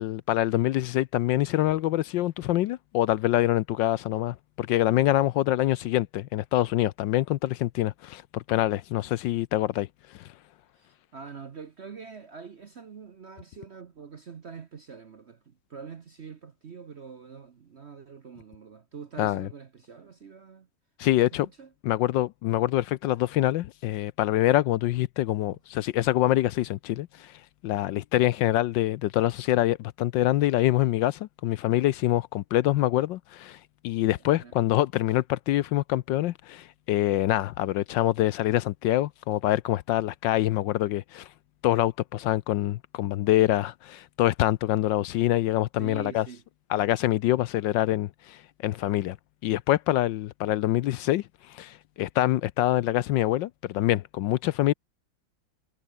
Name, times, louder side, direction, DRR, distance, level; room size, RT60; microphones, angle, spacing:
voice 1, 0.0-9.9 10.2-10.3 19.2-19.5 21.0-21.5 21.8-27.3 27.6-33.6 33.8-41.3 41.6-46.3 46.7-49.2 49.4-54.7, left 14 dB, 75° left, 1.2 m, -25 dB
voice 2, 10.7-20.7 21.1-21.7 34.1-34.5 45.8-46.4, right 6 dB, 45° right, 0.9 m, -44 dB
omnidirectional pair, 2.2 m